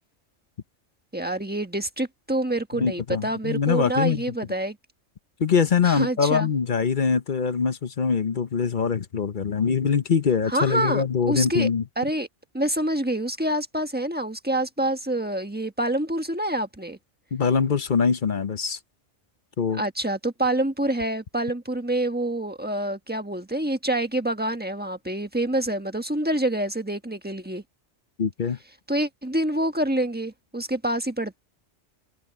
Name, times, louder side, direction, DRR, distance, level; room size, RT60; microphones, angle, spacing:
voice 1, 1.1-4.8 5.8-6.5 10.5-11.7 12.0-12.3 12.5-17.0 19.7-27.6 28.9-31.4, right 1 dB, 10° right, 1.3 m, -27 dB
voice 2, 2.8-4.2 5.4-11.8 17.3-18.8 19.6-19.8 28.2-28.6, left 6 dB, 45° left, 0.9 m, -23 dB
omnidirectional pair, 1.2 m